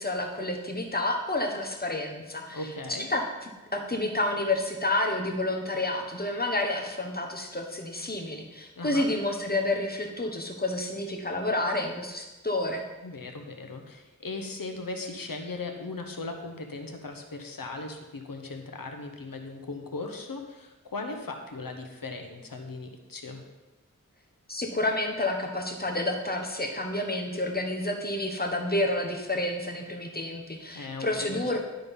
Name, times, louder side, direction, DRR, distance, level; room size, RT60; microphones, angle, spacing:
voice 1, 0.0-2.6 3.1-3.3 3.7-12.8 24.5-31.6, left 1 dB, 30° left, 2 dB, 1.3 m, -29 dB
voice 2, 2.5-3.1 8.8-9.1 13.0-23.4 30.7-31.6, left 3 dB, 85° left, 4 dB, 1.1 m, -38 dB
11.5 x 3.9 x 5.4 m, 1.1 s
wide cardioid pair, 65°, 33 cm